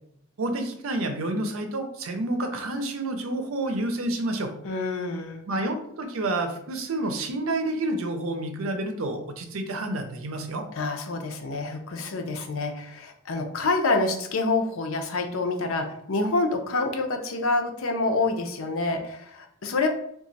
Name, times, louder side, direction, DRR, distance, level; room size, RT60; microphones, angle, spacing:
voice 1, 0.4-4.5 5.5-10.7, right 2 dB, 80° right, 6 dB, 0.6 m, -29 dB
voice 2, 4.6-5.4 10.8-19.9, left 3 dB, 80° left, 4 dB, 0.6 m, -27 dB
2.9 x 2.3 x 4.0 m, 0.72 s
head